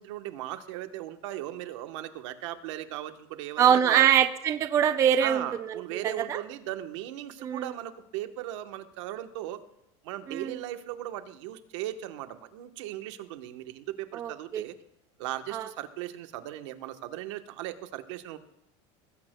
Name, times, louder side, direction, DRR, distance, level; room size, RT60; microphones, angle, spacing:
voice 1, 0.0-4.1 5.2-9.6 10.0-14.7 15.2-18.4, right 13 dB, 75° right, 8 dB, 1.1 m, -37 dB
voice 2, 3.6-6.4 7.4-7.7 10.3-10.5 14.1-14.6 15.5-15.7, right 9 dB, 20° right, 10 dB, 0.4 m, -24 dB
20.0 x 15.5 x 2.2 m, 0.82 s
cardioid pair, 175°, 16 cm